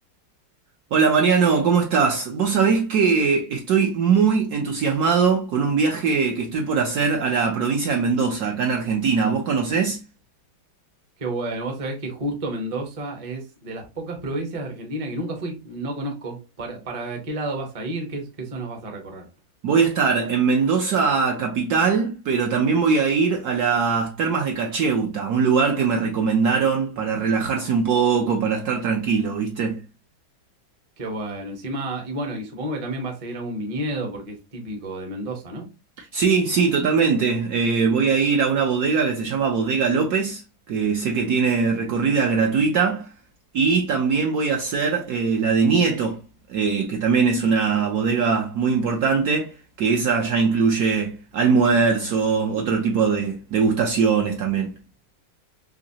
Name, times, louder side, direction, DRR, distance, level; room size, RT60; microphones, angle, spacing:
voice 1, 0.9-10.0 19.6-29.8 36.1-40.4 40.7-43.1 43.5-46.2 46.5-49.5 49.8-54.8, right 5 dB, 70° right, 0.9 m, -21 dB
voice 2, 11.2-19.3 31.0-35.7, right 1 dB, 35° right, 0.5 m, -31 dB
3.9 x 3.0 x 2.7 m
omnidirectional pair, 2.1 m